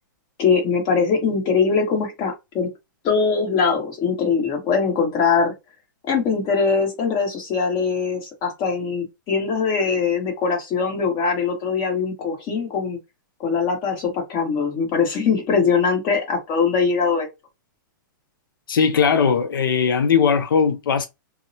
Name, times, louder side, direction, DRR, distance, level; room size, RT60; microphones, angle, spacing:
voice 1, 0.4-2.7 3.0-5.5 6.1-13.0 13.4-17.3, left 5 dB, 35° left, 1.3 m, -22 dB
voice 2, 18.7-21.1, left 6 dB, 85° left, 0.5 m, -19 dB
2.7 x 2.1 x 2.7 m
hypercardioid pair, 140°, 11 cm